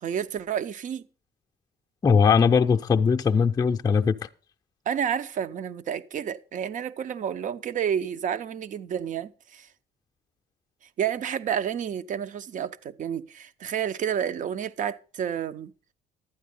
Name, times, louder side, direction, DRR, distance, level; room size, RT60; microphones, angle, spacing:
voice 1, 0.0-1.1 4.9-9.7 11.0-15.7, right 8 dB, 50° right, 0.7 m, -30 dB
voice 2, 2.0-4.1, left 6 dB, 25° left, 0.6 m, -20 dB
11.5 x 9.3 x 5.4 m
cardioid pair, 110°, 17 cm